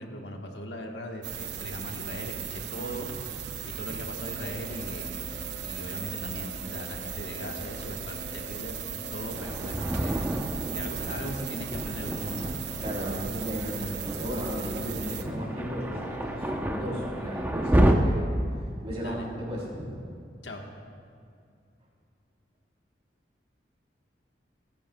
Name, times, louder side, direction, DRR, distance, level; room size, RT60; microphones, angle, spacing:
voice 1, 0.0-3.1 3.6-5.3 5.6-8.8 9.1-10.3 10.6-12.5 19.0-19.2 20.4-20.7, equal, 85° left, 1 dB, 1.4 m, -39 dB
sound 1, 1.2-15.2, right 8 dB, 75° right, 0.6 m, -37 dB
sound 2, 4.1-17.4, left 2 dB, 60° left, 1.9 m, -46 dB
Thunder, 9.3-17.9, right 1 dB, 10° right, 0.7 m, -30 dB
voice 2, 12.8-18.2 18.8-20.1, equal, 35° right, -4 dB, 3.4 m, -35 dB
29.0 x 10.0 x 2.3 m, 2.3 s
head